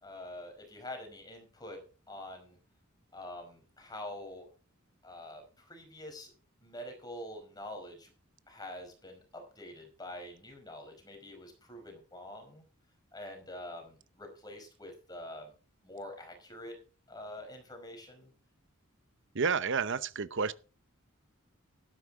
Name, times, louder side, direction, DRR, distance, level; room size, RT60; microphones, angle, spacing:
voice 1, 0.0-1.8 2.1-2.6 3.1-4.5 5.0-6.3 6.6-8.1 8.5-12.6 13.1-15.5 15.8-16.8 17.1-18.3, left 1 dB, 20° left, 5.0 m, -46 dB
voice 2, 19.3-20.5, right 5 dB, 60° right, 0.8 m, -30 dB
12.5 x 12.0 x 3.7 m
head